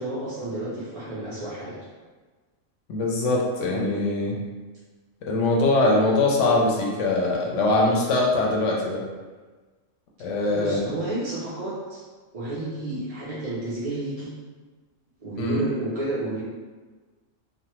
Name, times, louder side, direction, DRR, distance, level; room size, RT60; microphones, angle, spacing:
voice 1, 0.0-1.8 3.6-3.9 10.5-12.0 12.3-14.3 15.2-16.4, right 2 dB, 65° right, -8 dB, 0.3 m, -31 dB
voice 2, 2.9-4.4 5.2-9.0 10.2-10.9 15.4-15.6, left 2 dB, 70° left, -2 dB, 0.8 m, -22 dB
3.1 x 2.1 x 2.9 m, 1.3 s
omnidirectional pair, 1.4 m